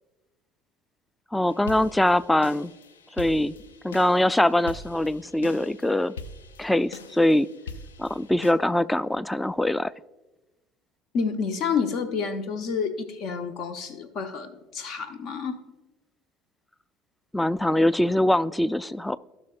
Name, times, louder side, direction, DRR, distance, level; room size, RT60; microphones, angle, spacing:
voice 1, 1.3-2.7 3.2-3.5 3.8-6.1 6.6-7.5 8.0-9.9 17.3-19.2, left 1 dB, 10° left, 19 dB, 0.3 m, -23 dB
sound 1, 1.5-8.5, left 3 dB, 75° left, 0.5 m, -43 dB
voice 2, 11.1-15.6, left 5 dB, 50° left, 10 dB, 0.8 m, -29 dB
16.5 x 6.0 x 2.4 m, 1.1 s
figure-of-eight pair, 60°, 0 cm